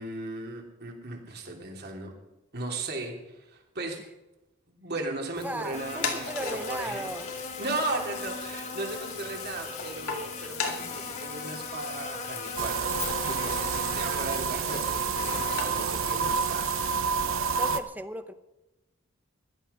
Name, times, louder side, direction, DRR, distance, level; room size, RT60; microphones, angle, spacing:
voice 1, 0.0-2.1 2.5-4.0 4.8-7.1 7.6-16.8, right 2 dB, 50° right, 1 dB, 3.0 m, -36 dB
sound 1, 5.3-17.0, left 6 dB, 85° left, 2.2 m, -39 dB
voice 2, 5.4-7.3 17.5-18.3, right 1 dB, 10° right, 10 dB, 0.8 m, -36 dB
Buzz, 5.7-15.7, left 4 dB, 35° left, 1.3 m, -39 dB
sound 2, 12.6-17.8, right 5 dB, 65° right, 0.9 m, -29 dB
15.5 x 11.5 x 5.6 m, 0.98 s
head